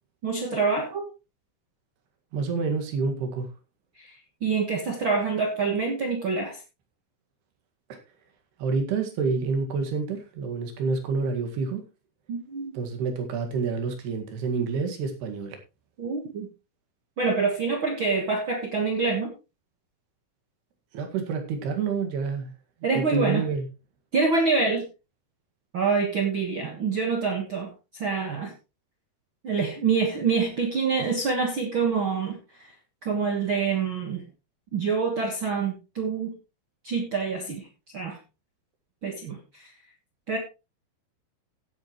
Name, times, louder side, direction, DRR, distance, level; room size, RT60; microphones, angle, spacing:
voice 1, 0.2-1.1 4.0-6.6 12.3-12.8 16.0-16.5 17.2-19.3 22.8-23.4 24.1-24.8 25.7-28.5 29.4-32.7 33.0-34.2 34.7-36.3 36.8-37.7 37.9-38.2 39.0-39.7 40.3-40.4, right 4 dB, 55° right, 3 dB, 1.4 m, -26 dB
voice 2, 2.3-3.5 7.9-8.0 8.6-11.8 12.7-15.6 20.9-22.5 23.0-23.7, right 4 dB, 80° right, 5 dB, 4.0 m, -28 dB
16.5 x 8.3 x 3.1 m, 0.28 s
omnidirectional pair, 4.5 m